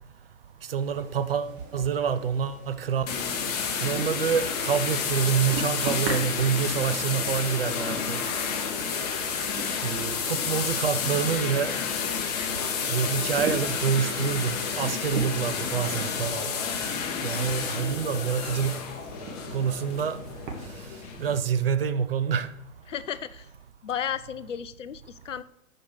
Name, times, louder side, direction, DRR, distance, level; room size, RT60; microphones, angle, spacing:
voice 1, 0.7-3.1 3.8-8.2 9.8-11.7 12.9-16.5 17.2-18.8 19.5-20.2 21.2-22.5, right 7 dB, 45° right, 0.5 m, -27 dB
sound 1, 0.8-20.7, right 3 dB, 20° right, 1.1 m, -40 dB
sound 2, 3.1-21.4, left 6 dB, 30° left, 0.8 m, -30 dB
voice 2, 22.9-23.5 23.8-25.4, left 8 dB, 60° left, 0.5 m, -33 dB
5.7 x 5.1 x 6.2 m
figure-of-eight pair, 120°, 41 cm